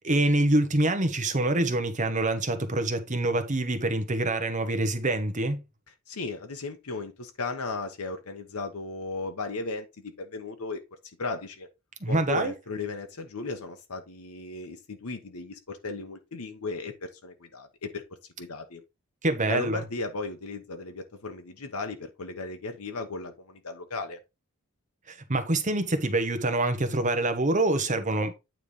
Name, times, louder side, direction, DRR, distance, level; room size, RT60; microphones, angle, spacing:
voice 1, 0.0-5.6 12.0-12.5 19.2-19.8 25.1-28.3, right 2 dB, 35° right, 1.1 m, -25 dB
voice 2, 6.1-10.8 11.2-11.7 12.1-18.0 18.4-18.8 19.5-24.2, left 3 dB, 85° left, 1.1 m, -36 dB
9.1 x 3.4 x 5.4 m
head